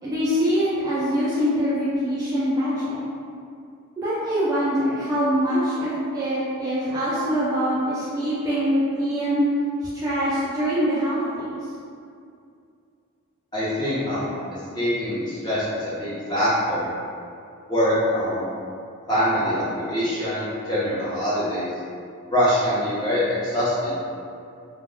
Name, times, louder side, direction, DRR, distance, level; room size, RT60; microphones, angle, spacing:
voice 1, 0.0-3.0 4.0-9.4 9.9-11.6, equal, 15° right, -10 dB, 0.3 m, -24 dB
voice 2, 13.5-14.3 14.7-16.9 17.7-18.4 19.1-21.7 22.3-23.9, equal, 20° left, -11 dB, 0.8 m, -24 dB
2.3 x 2.2 x 3.5 m, 2.4 s
head